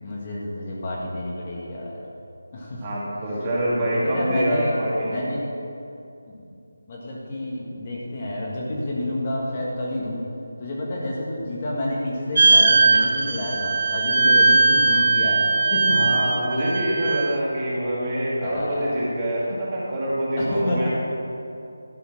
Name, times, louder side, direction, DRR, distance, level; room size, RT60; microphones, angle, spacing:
voice 1, 0.0-2.0 2.5-2.8 3.8-5.4 6.3-6.5 6.9-10.2 10.6-16.0 18.4-18.9 20.4-20.9, left 1 dB, 30° left, -4 dB, 1.5 m, -29 dB
voice 2, 2.8-5.1 15.9-20.9, right 1 dB, 20° right, -7 dB, 2.2 m, -25 dB
sound 1, 12.4-17.4, right 4 dB, 45° right, 0.4 m, -19 dB
12.0 x 5.5 x 6.0 m, 2.6 s
figure-of-eight pair, 170°, 0 cm